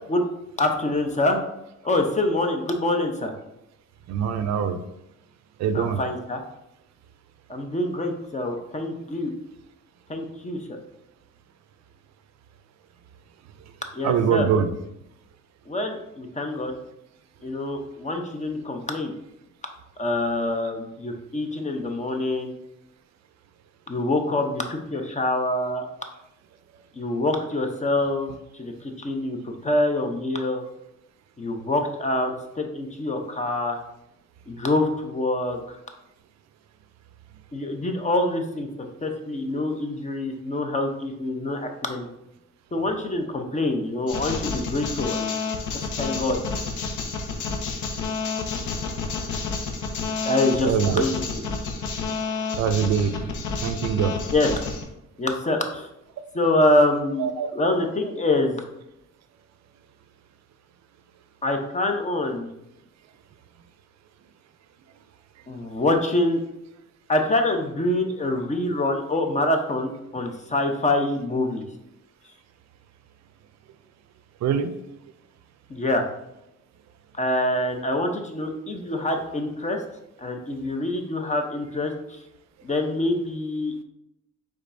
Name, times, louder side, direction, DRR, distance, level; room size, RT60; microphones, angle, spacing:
voice 1, 0.6-1.4 1.8-3.3 5.7-6.4 7.5-9.3 10.1-10.6 13.9-14.5 15.7-16.7 17.4-19.1 20.0-22.5 23.9-25.8 27.0-30.6 31.4-33.8 34.5-35.8 37.5-38.7 39.0-42.1 42.7-45.4 45.7-46.4 50.2-51.4 54.3-54.5 55.2-55.9 56.3-57.3 57.6-58.6 61.4-62.5 65.5-66.4 67.1-71.7 75.7-76.0 77.2-79.8 80.2-81.9 82.6-83.7, left 2 dB, 25° left, 4 dB, 0.7 m, -25 dB
voice 2, 4.1-4.8 5.6-6.0 14.0-14.7 50.6-51.0 52.6-53.1 53.6-54.2 57.2-57.5 74.4-74.7, right 7 dB, 65° right, 10 dB, 0.5 m, -23 dB
sound 1, 44.1-54.8, left 4 dB, 80° left, 0.7 m, -30 dB
5.2 x 3.6 x 2.6 m, 0.86 s
cardioid pair, 90°, 30 cm